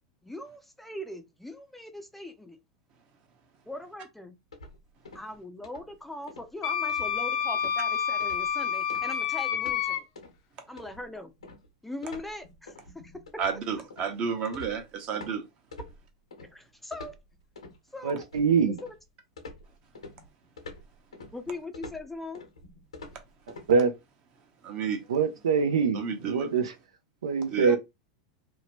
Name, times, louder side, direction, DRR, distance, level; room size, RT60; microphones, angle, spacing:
voice 1, 0.2-2.6 3.7-4.4 5.1-10.0 10.7-11.3 11.8-12.8 13.0-13.1 16.4-17.2 17.9-18.3 18.6-18.9 21.3-22.4 27.6-27.8, left 2 dB, 5° left, 0.5 m, -40 dB
sound 1, 4.5-5.4 5.6-5.9 6.3-6.5 6.9-7.3 7.5-7.8 8.2-8.5 8.9-9.9 10.2-10.4 10.8-15.4 15.7-16.5 16.9-17.8 18.2-19.0 19.4-23.7, left 2 dB, 90° left, 0.9 m, -46 dB
Wind instrument woodwind instrument, 6.6-10.0, left 8 dB, 55° left, 0.6 m, -28 dB
voice 2, 13.4-15.4 24.6-25.1 25.9-26.5 27.5-27.7, right 6 dB, 45° right, 0.9 m, -31 dB
voice 3, 18.0-18.8 23.7-23.9 25.1-26.7 27.2-27.8, right 5 dB, 80° right, 0.5 m, -24 dB
2.8 x 2.2 x 2.9 m
hypercardioid pair, 100°, 3 cm